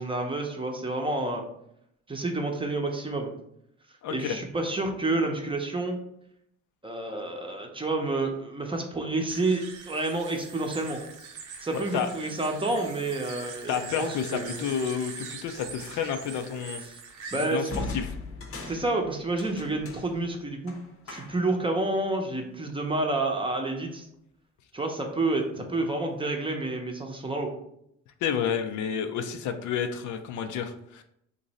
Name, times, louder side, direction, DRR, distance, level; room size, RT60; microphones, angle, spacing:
voice 1, 0.0-1.4 2.1-3.3 4.1-6.0 6.8-11.0 11.6-14.6 16.9-17.0 17.3-17.7 18.7-20.8 21.1-24.0 24.7-27.5, right 2 dB, 15° right, 2 dB, 0.6 m, -29 dB
voice 2, 4.0-4.4 11.7-12.1 13.7-16.8 17.3-18.1 28.2-31.0, left 7 dB, 75° left, 7 dB, 0.5 m, -30 dB
sound 1, 9.3-17.8, right 5 dB, 80° right, 0.7 m, -43 dB
sound 2, 17.7-21.6, left 3 dB, 45° left, 0.8 m, -39 dB
3.0 x 2.6 x 4.0 m, 0.74 s
cardioid pair, 90°, 30 cm